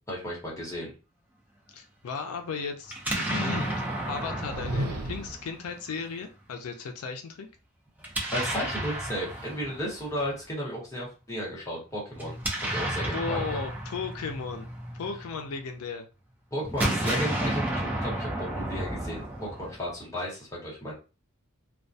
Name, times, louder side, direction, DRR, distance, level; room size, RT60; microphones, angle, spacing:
voice 1, 0.1-0.9 8.3-12.4 12.7-13.6 16.5-20.9, equal, 15° left, -5 dB, 1.0 m, -34 dB
voice 2, 1.7-7.5 13.1-14.7 14.9-16.1, left 5 dB, 85° left, 5 dB, 0.4 m, -35 dB
Explosion, 2.9-5.9 8.0-10.2 12.1-15.6 16.6-20.0, right 1 dB, 10° right, 0.5 m, -32 dB
sound 1, 4.3-5.5, right 1 dB, 75° right, 0.6 m, -33 dB
2.2 x 2.1 x 2.6 m, 0.32 s
head